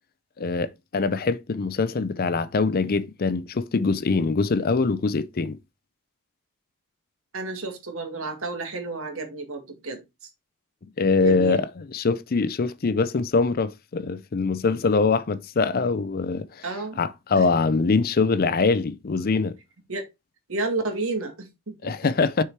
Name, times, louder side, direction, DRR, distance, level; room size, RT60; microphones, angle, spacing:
voice 1, 0.4-5.6 11.0-16.6 17.0-19.6 21.8-22.4, left 4 dB, 45° left, 0.5 m, -23 dB
voice 2, 7.3-10.3 11.2-11.6 16.6-17.0 17.4-17.5 19.9-20.1 20.5-21.9, right 3 dB, 70° right, 1.9 m, -31 dB
6.5 x 4.5 x 4.6 m
head